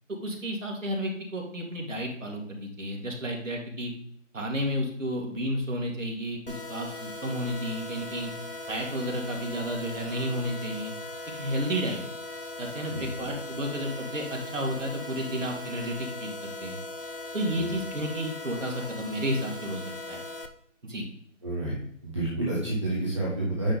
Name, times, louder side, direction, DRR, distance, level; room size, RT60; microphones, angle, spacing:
voice 1, 0.2-3.9 4.3-8.3 8.7-10.9 11.4-12.0 12.6-16.4 16.6-16.8 17.3-19.8 20.1-20.2 20.8-21.1, equal, 70° right, 0 dB, 2.2 m, -32 dB
sound 1, 6.5-20.5, left 2 dB, 45° left, 0.7 m, -39 dB
voice 2, 21.4-21.7 22.0-23.7, right 2 dB, 20° right, -8 dB, 1.4 m, -29 dB
9.6 x 4.1 x 3.6 m, 0.69 s
figure-of-eight pair, 175°, 39 cm